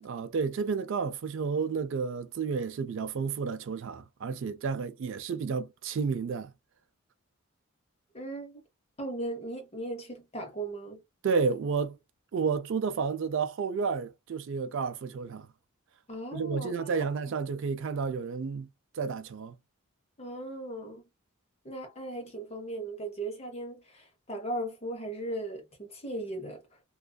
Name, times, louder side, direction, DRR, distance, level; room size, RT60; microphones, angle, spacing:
voice 1, 0.0-6.5 11.2-12.0 12.3-15.5 16.3-18.7 18.9-19.6, right 5 dB, 55° right, 0.3 m, -31 dB
voice 2, 8.1-8.6 9.0-11.0 16.1-17.6 20.2-21.0 21.6-26.6, right 1 dB, 25° left, 0.7 m, -38 dB
2.5 x 2.3 x 2.2 m
head